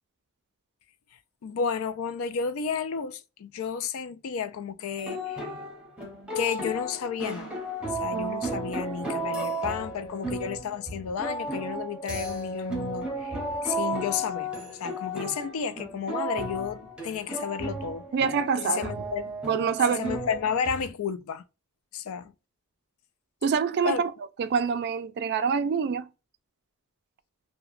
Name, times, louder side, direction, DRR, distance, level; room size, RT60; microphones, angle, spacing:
voice 1, 1.4-5.5 6.4-7.6 8.0-14.5 14.8-18.0 18.6-19.3 19.9-21.4 21.9-22.3 23.8-24.0, left 6 dB, 70° left, 0.3 m, -32 dB
sound 1, 5.0-20.9, right 1 dB, 5° right, 0.7 m, -34 dB
voice 2, 18.1-18.9 19.5-20.0 23.4-24.1 24.4-26.1, right 6 dB, 50° right, 0.3 m, -25 dB
2.8 x 2.1 x 2.4 m
head